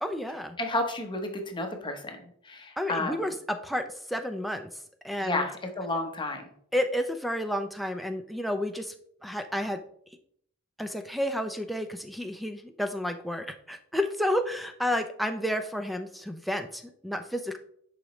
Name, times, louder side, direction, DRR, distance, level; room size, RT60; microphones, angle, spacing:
voice 1, 0.0-0.6 2.8-4.7 5.0-5.5 6.7-8.9 9.2-9.8 10.8-17.6, left 1 dB, ahead, 6 dB, 0.5 m, -31 dB
voice 2, 0.6-3.3 5.2-6.5, left 2 dB, 20° left, 4 dB, 1.0 m, -32 dB
10.0 x 5.0 x 3.2 m, 0.66 s
head